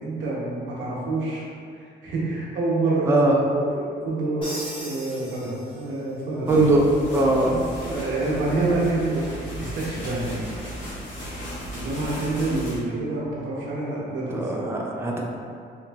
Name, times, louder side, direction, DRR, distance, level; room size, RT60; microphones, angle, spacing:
voice 1, 0.0-1.5 1.7-3.3 3.5-6.6 7.1-7.5 7.8-9.3 9.6-10.4 11.7-14.7, right 2 dB, 70° right, -6 dB, 0.7 m, -27 dB
voice 2, 3.1-3.4 6.5-6.9 7.1-7.6 14.2-15.2, right 2 dB, 15° right, -1 dB, 0.4 m, -20 dB
Crash cymbal, 4.4-6.1, equal, 25° left, 0.9 m, -38 dB
sound 1, 6.5-12.8, right 1 dB, 70° left, 1.0 m, -36 dB
2.9 x 2.5 x 2.3 m, 2.4 s
cardioid pair, 90°, 20 cm